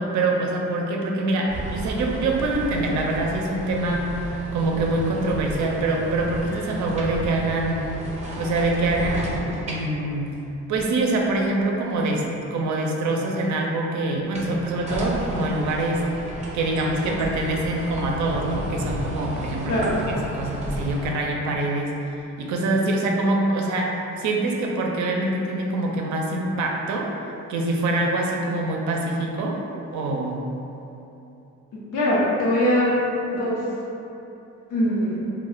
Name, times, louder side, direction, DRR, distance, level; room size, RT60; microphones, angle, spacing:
voice 1, 0.0-4.1 4.5-7.8 8.4-10.3 10.7-16.0 16.5-19.8 20.1-27.1 27.5-29.6 29.9-30.4, right 2 dB, 70° right, 0 dB, 0.5 m, -25 dB
sound 1, 1.5-11.8 14.2-21.1, equal, 25° right, 0.6 m, -33 dB
voice 2, 31.7-32.9 33.3-33.6 34.7-35.2, equal, 90° left, -6 dB, 0.7 m, -22 dB
2.2 x 2.0 x 3.7 m, 2.9 s
cardioid pair, 90°, 30 cm